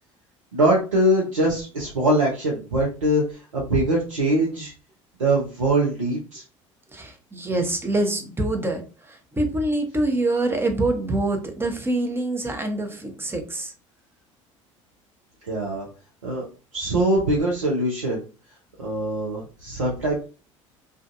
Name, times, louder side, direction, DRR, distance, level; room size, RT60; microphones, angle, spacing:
voice 1, 0.5-4.7 5.2-6.4 15.5-15.9 16.2-16.4 16.7-18.2 18.8-20.2, right 1 dB, 85° right, -3 dB, 0.6 m, -22 dB
voice 2, 6.9-13.7, right 2 dB, 15° right, 4 dB, 0.8 m, -25 dB
2.4 x 2.4 x 2.6 m, 0.35 s
figure-of-eight pair, 65°, 16 cm